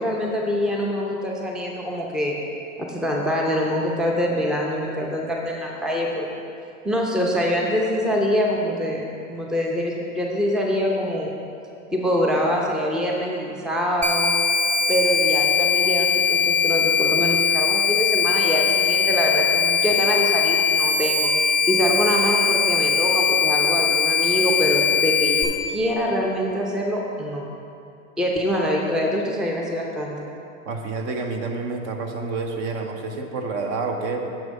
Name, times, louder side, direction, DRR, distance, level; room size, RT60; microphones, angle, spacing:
voice 1, 0.0-2.4 2.9-6.3 6.8-11.3 11.9-14.4 14.9-21.3 21.7-27.5 28.2-30.2, equal, ahead, -1 dB, 0.6 m, -24 dB
sound 1, 14.0-25.4, left 6 dB, 20° right, 1.0 m, -20 dB
voice 2, 30.6-34.4, right 3 dB, 40° right, 4 dB, 0.8 m, -28 dB
7.2 x 6.2 x 5.2 m, 2.6 s
hypercardioid pair, 110°, 40 cm